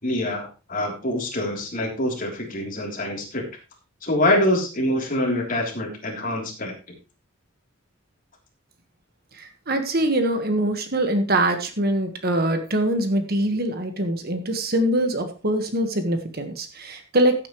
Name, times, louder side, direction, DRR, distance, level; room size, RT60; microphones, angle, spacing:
voice 1, 0.0-3.5 4.0-6.7, left 1 dB, 40° left, 0 dB, 3.5 m, -25 dB
voice 2, 9.3-17.5, right 1 dB, 50° right, 7 dB, 1.6 m, -23 dB
15.0 x 8.5 x 3.2 m, 0.31 s
head